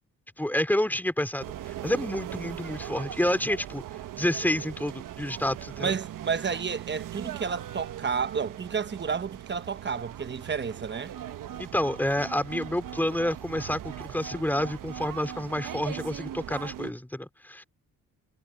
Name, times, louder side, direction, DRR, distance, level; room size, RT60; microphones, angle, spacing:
voice 1, 0.4-3.8 4.2-6.0 11.6-17.6, left 1 dB, 5° left, 3.2 m, -29 dB
sound 1, 1.4-16.9, right 11 dB, 80° right, 1.3 m, -40 dB
voice 2, 5.8-11.1, right 6 dB, 35° right, 1.1 m, -31 dB
cardioid pair, 80°, 32 cm